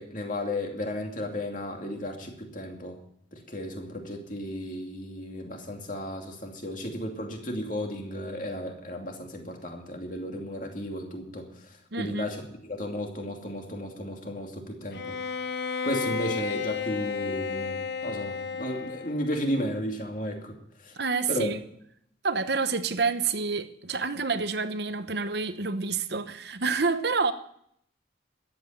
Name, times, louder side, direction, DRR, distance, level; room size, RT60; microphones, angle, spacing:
voice 1, 0.0-3.0 3.3-15.2 15.8-20.5 20.8-21.0 21.3-21.5, left 1 dB, 45° left, 2.5 m, -34 dB
voice 2, 11.9-12.3 21.0-21.6 22.2-27.3, right 4 dB, 60° right, 0.9 m, -28 dB
Bowed string instrument, 14.9-19.3, left 5 dB, 60° left, 0.8 m, -32 dB
13.5 x 8.5 x 9.3 m
head